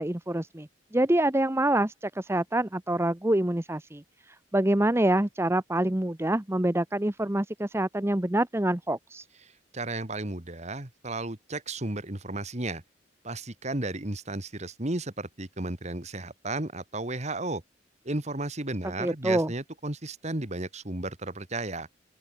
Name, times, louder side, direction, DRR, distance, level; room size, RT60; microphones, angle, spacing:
voice 1, 0.0-9.2 18.8-19.5, right 1 dB, 15° right, 0.8 m, -26 dB
voice 2, 9.4-12.8 13.2-17.6 18.1-21.9, right 2 dB, 35° right, 2.0 m, -34 dB
open air
head